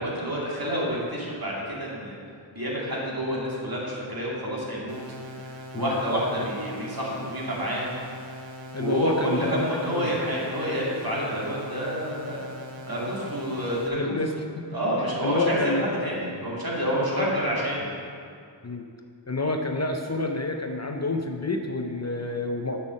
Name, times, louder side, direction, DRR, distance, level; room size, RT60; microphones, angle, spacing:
voice 1, 0.0-2.2 2.6-5.0 5.7-7.8 8.8-12.4 12.9-14.2 14.7-17.9, equal, 50° right, -5 dB, 2.4 m, -28 dB
sound 1, 4.9-13.9, equal, 80° right, 1.0 m, -41 dB
voice 2, 8.7-10.1 13.9-14.9 15.2-15.9 17.1-17.3 18.6-18.9 19.3-22.8, left 2 dB, 35° left, 3 dB, 0.6 m, -29 dB
8.2 x 5.6 x 6.3 m, 2.3 s
wide cardioid pair, 55°, 46 cm